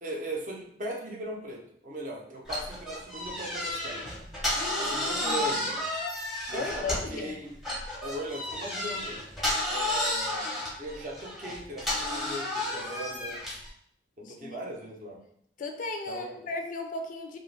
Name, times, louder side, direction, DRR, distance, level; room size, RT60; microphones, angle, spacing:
voice 1, 0.0-4.2 4.8-6.0 6.5-7.5 8.0-9.2 9.6-10.5 10.8-13.4 14.2-15.2 16.1-16.4, right 1 dB, 45° right, -1 dB, 0.5 m, -38 dB
sound 1, 2.5-7.2 7.6-13.7, left 1 dB, ahead, 0.6 m, -32 dB
voice 2, 4.5-5.5 6.5-7.4 14.2-14.6 15.6-17.4, left 3 dB, 45° left, 5 dB, 0.3 m, -36 dB
2.4 x 2.2 x 3.1 m, 0.68 s
head